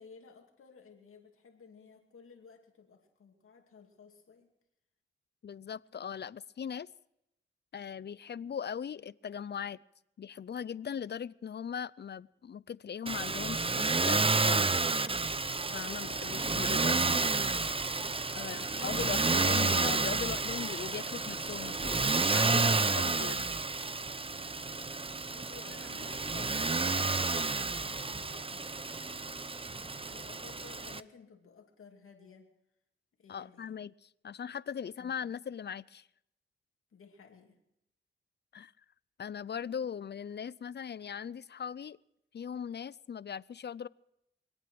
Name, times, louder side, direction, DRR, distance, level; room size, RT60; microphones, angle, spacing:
voice 1, 0.0-4.5 18.3-19.0 25.3-28.7 29.7-32.5 33.2-33.8 35.0-35.2 36.9-37.6, left 5 dB, 85° left, 2.5 m, -55 dB
voice 2, 5.4-6.9 7.7-9.8 10.2-14.6 15.7-17.3 18.3-23.4 33.3-36.1 38.5-38.7 39.2-42.0 42.3-43.9, left 7 dB, 55° left, 0.5 m, -39 dB
Motor vehicle (road), 13.1-31.0, right 3 dB, 25° right, 0.7 m, -30 dB
24.5 x 9.0 x 6.2 m
cardioid pair, 45°, 21 cm